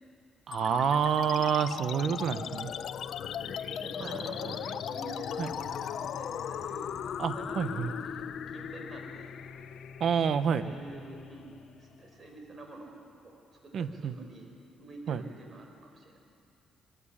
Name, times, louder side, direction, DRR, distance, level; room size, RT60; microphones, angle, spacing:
sound 1, 0.5-11.5, left 8 dB, 70° left, 0.8 m, -38 dB
voice 1, 0.5-2.7 5.4-5.5 7.2-7.9 10.0-10.7 13.7-14.1 15.1-15.2, right 7 dB, 60° right, 11 dB, 1.1 m, -28 dB
sound 2, 1.6-13.0, left 5 dB, 15° left, 5.2 m, -50 dB
voice 2, 3.3-9.3 10.5-11.5 11.8-14.5 14.8-16.2, right 2 dB, 40° right, 3 dB, 4.6 m, -48 dB
24.0 x 14.5 x 9.9 m, 2.3 s
cardioid pair, 90°, 0 cm